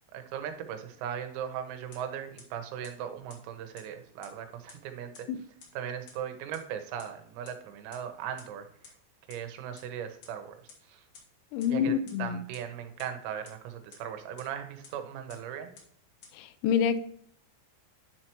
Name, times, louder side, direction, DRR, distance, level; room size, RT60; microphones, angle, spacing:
voice 1, 0.1-5.3 5.8-8.9 9.3-10.6 10.8-11.1 11.7-15.7, right 9 dB, 90° right, 7 dB, 3.6 m, -38 dB
sound 1, 1.9-2.0 2.4-2.5 2.8-2.9 3.3-3.4 3.8-3.9 4.2-4.3 4.7-4.8 5.1-5.2 5.6-5.7 6.1-6.2 6.5-6.6 7.0-7.1 7.4-7.5 7.9-8.0 8.4-8.5 8.8-8.9 9.3-9.4 9.8-9.9 10.2-10.3 10.7-10.8 11.1-11.2 11.6-11.7 12.1-12.2 12.5-12.6 13.0-13.1 13.5-13.6 13.9-14.0 14.4-14.5 14.8-14.9 15.3-15.4 15.8-15.9 16.2-16.3, left 6 dB, 60° left, 2.2 m, -50 dB
voice 2, 11.5-12.4 16.3-17.0, left 8 dB, 85° left, 13 dB, 3.3 m, -27 dB
10.5 x 4.4 x 2.9 m, 0.67 s
omnidirectional pair, 5.9 m